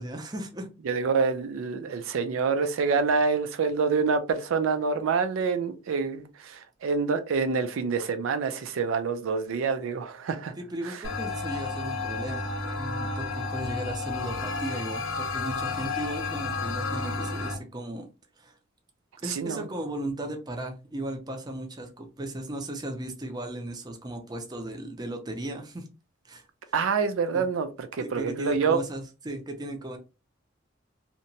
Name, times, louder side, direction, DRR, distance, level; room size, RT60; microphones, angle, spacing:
voice 1, 0.0-0.7 10.6-12.5 12.8-18.1 18.4-18.5 19.2-25.9 26.2-26.4 27.3-27.5 28.0-30.0, right 1 dB, 20° right, 0.5 m, -36 dB
voice 2, 0.8-10.5 10.8-11.0 19.2-19.7 26.7-28.8, right 5 dB, 85° right, 0.4 m, -27 dB
sound 1, 11.0-17.6, left 3 dB, 80° left, 0.6 m, -31 dB
2.8 x 2.1 x 2.6 m
head